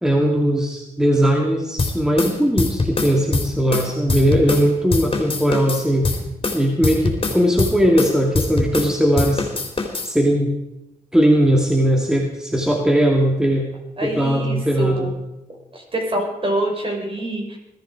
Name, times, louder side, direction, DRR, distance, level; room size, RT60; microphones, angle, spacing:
voice 1, 0.0-6.1 6.5-9.4 10.0-10.5 11.1-13.7 14.0-15.1, equal, 5° right, 0 dB, 2.4 m, -19 dB
sound 1, 1.8-4.7 4.9-8.9 9.2-10.1, left 3 dB, 35° left, 3.6 m, -23 dB
voice 2, 14.0-15.1 15.7-17.6, right 1 dB, 35° right, 1 dB, 5.6 m, -25 dB
22.0 x 13.5 x 5.0 m, 0.90 s
cardioid pair, 100°, 15 cm